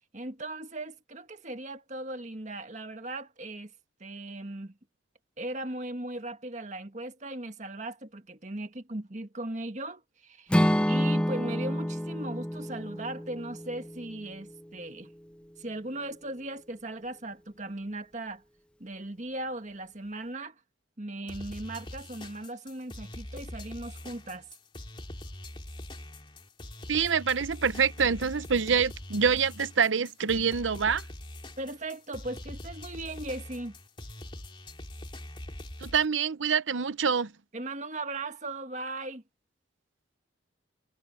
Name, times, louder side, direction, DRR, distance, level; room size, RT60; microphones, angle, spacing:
voice 1, 0.1-3.7 4.0-4.7 5.4-15.1 15.6-18.4 18.8-20.5 21.0-24.5 31.6-33.7 37.5-39.2, right 2 dB, 40° right, 1.7 m, -38 dB
Acoustic guitar / Strum, 10.5-14.6, equal, 5° left, 1.1 m, -28 dB
sound 1, 21.3-36.1, left 1 dB, 25° left, 2.5 m, -43 dB
voice 2, 26.9-31.0 35.8-37.3, right 6 dB, 85° right, 0.8 m, -26 dB
head